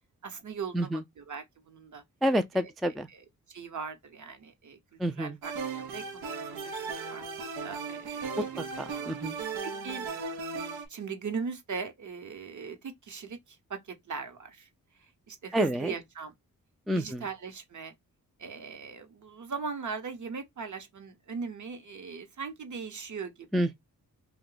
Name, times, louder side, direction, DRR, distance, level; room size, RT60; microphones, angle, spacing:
voice 1, 0.2-2.0 2.5-8.7 9.1-10.1 10.9-16.3 16.9-17.9 18.4-23.7, right 5 dB, 55° right, 0.9 m, -40 dB
voice 2, 2.2-3.1 5.0-5.3 8.4-8.5 9.1-9.4 15.5-15.9 16.9-17.2 23.5-23.7, equal, ahead, 0.3 m, -28 dB
sound 1, 5.4-10.9, right 5 dB, 90° right, 0.7 m, -36 dB
2.7 x 2.2 x 3.8 m
cardioid pair, 65°, 36 cm